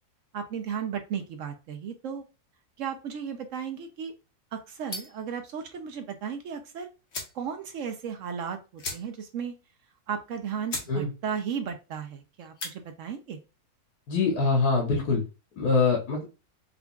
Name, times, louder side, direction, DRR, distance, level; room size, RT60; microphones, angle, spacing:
voice 1, 0.3-2.3 2.8-4.1 4.5-6.9 7.3-9.5 10.1-13.4, right 7 dB, 70° right, 7 dB, 0.8 m, -35 dB
sound 1, 4.9-5.3 6.6-6.7 7.1-7.4 7.8-7.9 8.1-8.3 8.8-9.4 9.7-9.8 10.3-10.4 10.7-10.9 11.3-11.6 12.4-12.8, left 3 dB, 50° left, 1.2 m, -37 dB
voice 2, 14.1-15.2 15.6-16.2, left 4 dB, 75° left, 0 dB, 1.5 m, -24 dB
5.0 x 2.4 x 2.3 m, 0.30 s
omnidirectional pair, 1.7 m